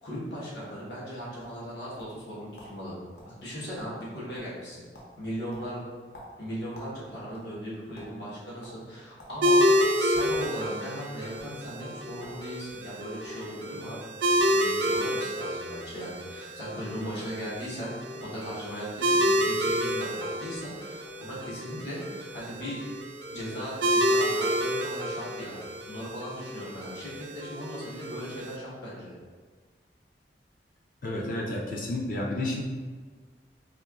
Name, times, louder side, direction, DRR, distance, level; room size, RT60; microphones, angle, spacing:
voice 1, 0.0-2.9 3.2-4.9 5.2-5.8 6.4-14.1 14.4-17.9 18.2-22.8 23.3-25.6 25.9-29.1, equal, 80° left, -8 dB, 1.2 m, -38 dB
sound 1, 1.4-2.3 2.6-2.7 3.2-3.3 3.6-4.1 4.3-4.6 4.9-5.1 5.5-7.0 7.3-8.1 8.6-8.8 9.2-9.3 9.8-10.5 11.2-11.4 12.2-12.4 12.7-13.3 14.0-14.1 14.4-14.6 14.9-15.2, equal, 65° left, 0.9 m, -49 dB
sound 2, 9.4-28.6, equal, 85° right, 0.4 m, -29 dB
voice 2, 31.0-32.6, left 1 dB, 50° left, -2 dB, 0.4 m, -31 dB
4.4 x 2.9 x 2.3 m, 1.5 s
head